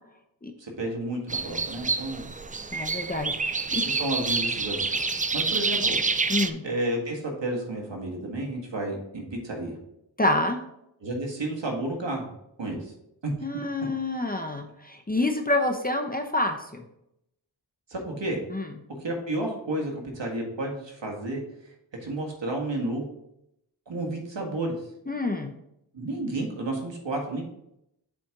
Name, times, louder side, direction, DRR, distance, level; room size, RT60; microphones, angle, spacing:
voice 1, 0.6-2.2 3.7-5.0 5.3-6.0 6.6-9.8 11.0-12.3 12.6-12.9 13.2-13.3 17.9-18.4 19.0-21.4 22.0-23.0 23.9-24.7 25.9-27.4, right 1 dB, 65° right, 0 dB, 1.7 m, -31 dB
sound 1, 1.3-6.5, right 4 dB, 20° right, 0.3 m, -27 dB
voice 2, 2.7-3.8 6.3-6.6 10.2-10.6 13.4-16.8 18.5-18.7 25.1-25.5, left 2 dB, 20° left, 4 dB, 0.7 m, -27 dB
7.2 x 4.3 x 3.8 m, 0.80 s
cardioid pair, 50°, 47 cm